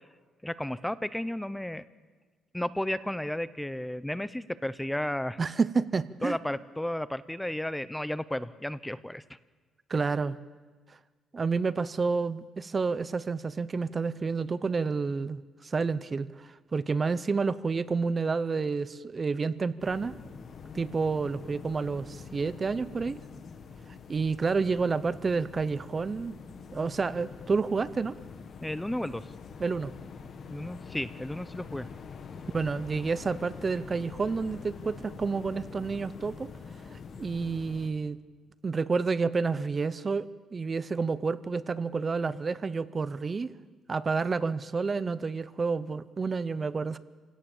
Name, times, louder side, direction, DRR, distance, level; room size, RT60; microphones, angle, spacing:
voice 1, 0.4-1.8 2.5-5.4 6.2-9.2 28.6-29.3 30.5-31.9, left 1 dB, 5° left, 15 dB, 0.7 m, -33 dB
voice 2, 5.4-6.4 9.9-10.4 11.3-20.1 20.7-23.2 24.1-26.3 26.7-28.2 29.6-29.9 32.5-36.5 36.9-38.2 38.6-43.5 43.9-47.0, right 4 dB, 35° right, 16 dB, 0.8 m, -29 dB
sound 1, 19.8-37.9, left 5 dB, 55° left, 2.0 m, -45 dB
28.0 x 17.5 x 7.2 m, 1.4 s
cardioid pair, 90°, 0 cm